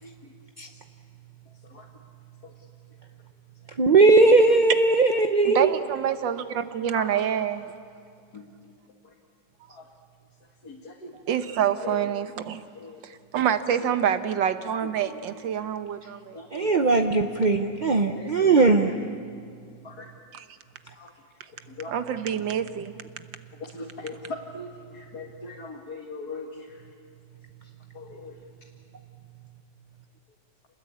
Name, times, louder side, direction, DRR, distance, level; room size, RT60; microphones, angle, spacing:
voice 1, 0.0-0.3 0.7-0.8 1.6-1.9 2.4-2.7 3.7-3.8 4.5-4.6 5.4-5.5 6.6-7.1 8.3-8.7 9.0-9.1 9.7-9.9 10.6-11.2 11.8-12.1 12.7-13.0 13.8-13.9 14.8-15.2 16.3-17.1 17.9-18.7 19.8-20.1 20.9-21.2 21.5-22.0 23.5-26.9 27.6-28.4, left 3 dB, 60° left, -1 dB, 2.4 m, -41 dB
voice 2, 3.8-5.7 16.5-18.9, right 3 dB, 45° right, 5 dB, 0.6 m, -19 dB
voice 3, 5.5-7.7 11.3-12.6 13.3-16.4 21.9-22.9, right 9 dB, 85° right, 10 dB, 1.8 m, -26 dB
28.0 x 20.5 x 8.6 m, 2.3 s
omnidirectional pair, 2.0 m